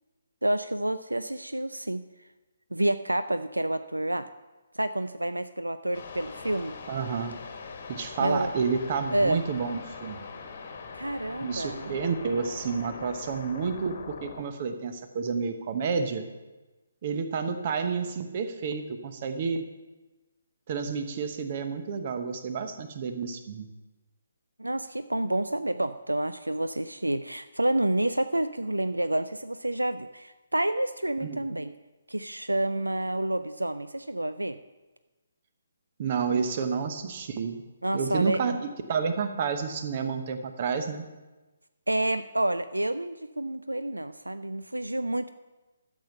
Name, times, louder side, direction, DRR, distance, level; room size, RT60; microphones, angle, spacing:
voice 1, 0.4-2.0 2.7-4.3 4.7-6.8 8.2-8.5 9.1-9.4 10.9-11.9 24.6-31.7 32.1-34.6 36.3-36.5 37.8-38.6 41.9-45.3, right 1 dB, 80° right, 11 dB, 0.4 m, -29 dB
sound 1, 5.9-14.5, left 5 dB, 40° left, 1.3 m, -42 dB
voice 2, 6.9-7.4 7.9-10.2 11.4-16.3 17.0-19.6 20.7-23.7 31.2-31.4 36.0-37.6 37.9-41.1, right 5 dB, 35° right, 8 dB, 1.0 m, -30 dB
12.0 x 7.3 x 5.5 m, 1.2 s
figure-of-eight pair, 140°, 0 cm